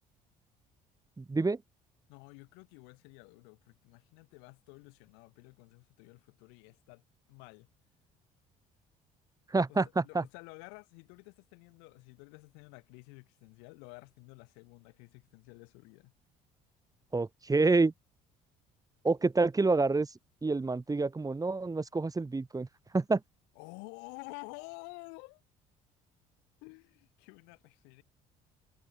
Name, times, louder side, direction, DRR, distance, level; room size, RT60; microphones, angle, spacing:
voice 1, 1.2-1.6 9.5-10.2 17.1-17.9 19.0-20.1 20.4-22.7 22.9-23.2, right 3 dB, 20° right, 2.4 m, -28 dB
voice 2, 2.1-7.0 7.3-7.7 9.7-16.1 23.5-25.4 26.6-28.0, left 37 dB, 85° left, 6.4 m, -51 dB
supercardioid pair, 70°, 17 cm